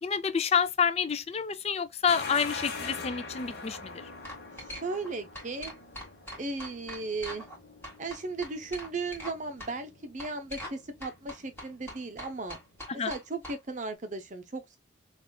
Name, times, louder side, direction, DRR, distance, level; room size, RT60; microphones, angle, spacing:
voice 1, 0.0-4.0 12.9-13.1, left 6 dB, 30° left, 0.4 m, -28 dB
sound 1, 2.1-12.8, left 4 dB, 50° left, 1.0 m, -44 dB
sound 2, 3.6-3.8 4.2-5.1 5.3-7.6 7.8-9.3 9.6-9.7 10.2-10.8 11.0-13.6, equal, 10° left, 1.8 m, -42 dB
voice 2, 4.7-5.7 6.4-7.5 8.0-12.6 13.1-14.8, right 3 dB, 40° right, 0.6 m, -36 dB
5.9 x 2.4 x 2.2 m
head